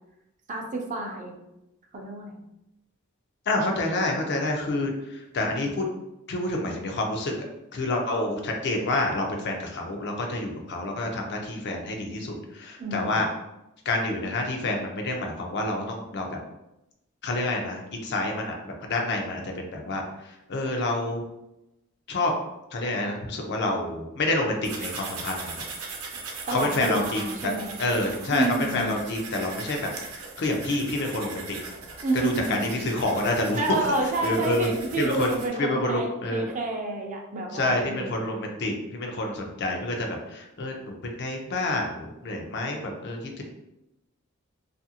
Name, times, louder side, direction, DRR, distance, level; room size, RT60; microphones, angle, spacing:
voice 1, 0.5-1.4 1.9-2.4 12.8-13.1 26.5-27.7 28.3-28.9 32.0-32.7 33.5-38.4, right 2 dB, 35° right, 1 dB, 0.5 m, -29 dB
voice 2, 3.5-5.8 6.3-7.3 7.7-13.3 13.8-16.4 17.2-21.2 22.1-22.3 22.7-25.6 26.5-27.5 27.8-28.5 28.7-29.8 30.1-31.6 32.2-33.6 34.2-34.7 35.0-36.5 37.5-43.4, left 2 dB, 50° left, 2 dB, 0.5 m, -28 dB
sound 1, 24.6-35.5, right 4 dB, 85° right, 0.7 m, -39 dB
2.8 x 2.5 x 2.7 m, 0.89 s
head